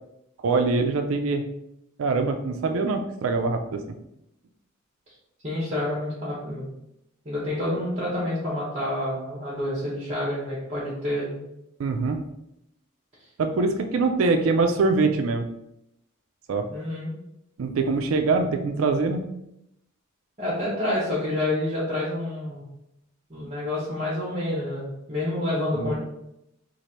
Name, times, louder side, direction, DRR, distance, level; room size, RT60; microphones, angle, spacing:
voice 1, 0.4-1.4 2.0-3.8 11.8-12.2 13.4-15.4 16.5-16.7 17.6-19.3 25.7-25.9, right 3 dB, 70° right, 6 dB, 0.4 m, -23 dB
voice 2, 5.4-6.7 7.2-11.4 16.7-17.1 20.4-22.7 23.3-25.9, left 1 dB, 30° right, -7 dB, 1.1 m, -28 dB
3.1 x 2.5 x 4.2 m, 0.82 s
head